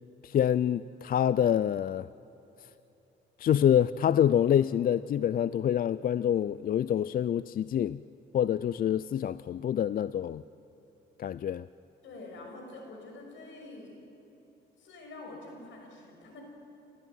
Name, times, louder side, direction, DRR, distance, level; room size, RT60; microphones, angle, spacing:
voice 1, 0.2-2.1 3.4-8.0 8.3-10.4 11.2-11.7, left 10 dB, 45° left, 17 dB, 0.4 m, -26 dB
voice 2, 12.0-13.9 14.8-16.4, left 2 dB, 75° left, 2 dB, 6.1 m, -46 dB
28.5 x 14.0 x 9.2 m, 2.9 s
cardioid pair, 90°, 20 cm